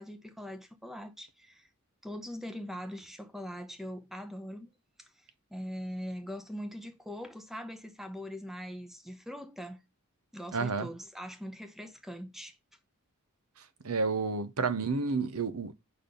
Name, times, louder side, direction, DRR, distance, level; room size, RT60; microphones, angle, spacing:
voice 1, 0.0-1.7 2.0-4.7 5.0-5.1 5.5-9.8 10.3-12.5, equal, ahead, 0.7 m, -42 dB
voice 2, 10.5-10.9 13.8-15.7, right 4 dB, 80° right, 0.8 m, -30 dB
5.2 x 4.3 x 5.1 m
head